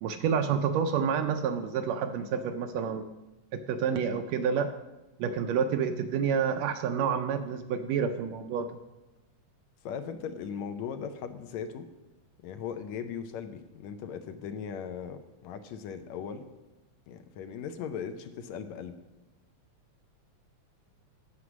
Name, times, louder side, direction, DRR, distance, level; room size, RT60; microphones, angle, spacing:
voice 1, 0.0-3.1 3.5-4.7 5.2-8.8, right 7 dB, 80° right, 8 dB, 1.7 m, -29 dB
voice 2, 9.8-11.9 12.4-16.5 17.1-19.0, left 7 dB, 75° left, 8 dB, 1.8 m, -38 dB
9.6 x 8.3 x 6.1 m, 1.0 s
omnidirectional pair, 3.5 m